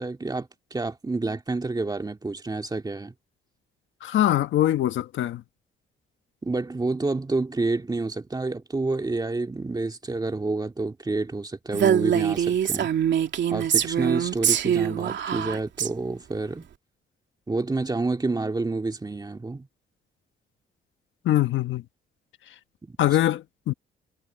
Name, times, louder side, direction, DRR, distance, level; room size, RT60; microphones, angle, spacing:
voice 1, 0.0-3.1 6.4-12.9 13.5-16.7 17.5-19.7 22.8-23.0, right 3 dB, 20° right, 2.3 m, -29 dB
voice 2, 4.0-5.4 21.2-21.8 23.0-23.7, left 13 dB, 75° left, 1.3 m, -23 dB
Female speech woman speaking, 11.7-15.9, right 9 dB, 65° right, 2.8 m, -23 dB
cardioid pair, 90°, 20 cm